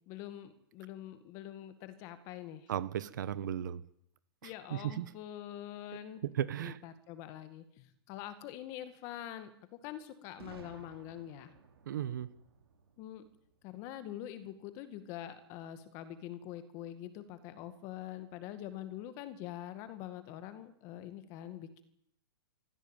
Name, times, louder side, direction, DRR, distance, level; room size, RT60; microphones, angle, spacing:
voice 1, 0.1-2.7 4.4-6.2 6.6-11.5 13.0-13.2 13.6-21.8, left 12 dB, 25° left, 11 dB, 2.1 m, -45 dB
voice 2, 2.7-3.8 4.4-5.1 6.2-6.8 11.9-12.3, right 10 dB, 50° right, 17 dB, 1.2 m, -36 dB
Boom, 10.4-14.2, right 6 dB, 80° right, 5.2 m, -57 dB
24.0 x 16.0 x 9.1 m, 0.72 s
hypercardioid pair, 175°, 13 cm